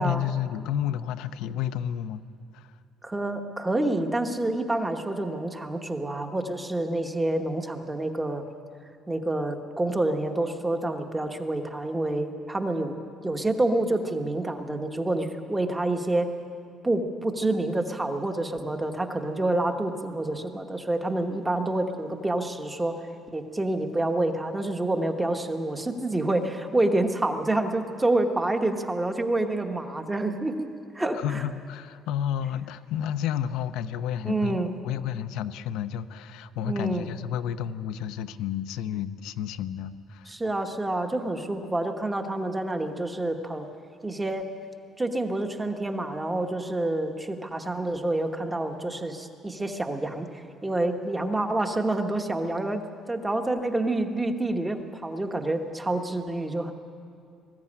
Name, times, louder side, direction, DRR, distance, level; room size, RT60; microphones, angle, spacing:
voice 1, 0.0-2.2 2.5-2.7 31.1-40.4, left 10 dB, 85° left, 11 dB, 0.7 m, -31 dB
voice 2, 3.0-8.4 9.1-12.9 13.2-16.3 16.8-22.9 23.3-30.7 30.9-31.4 34.2-34.7 36.6-37.1 40.3-43.7 44.0-44.5 45.0-52.8 53.1-56.7, right 2 dB, 10° right, 5 dB, 1.1 m, -28 dB
20.5 x 15.0 x 9.8 m, 2.5 s
cardioid pair, 180°, 0 cm